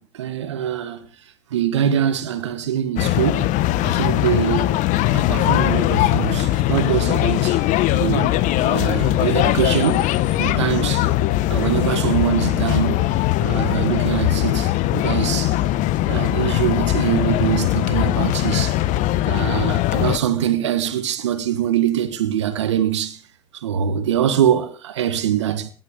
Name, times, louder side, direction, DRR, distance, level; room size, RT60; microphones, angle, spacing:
voice 1, 0.1-1.1 1.5-3.5 3.8-4.8 5.1-7.6 7.9-8.3 8.6-10.1 10.4-11.1 11.5-13.1 13.4-15.6 16.0-18.8 19.2-23.2 23.5-25.7, right 10 dB, 90° right, 1.6 m, -23 dB
sound 1, 3.0-20.2, left 15 dB, 60° left, 1.1 m, -20 dB
17.5 x 11.5 x 5.2 m
hypercardioid pair, 80°, 15 cm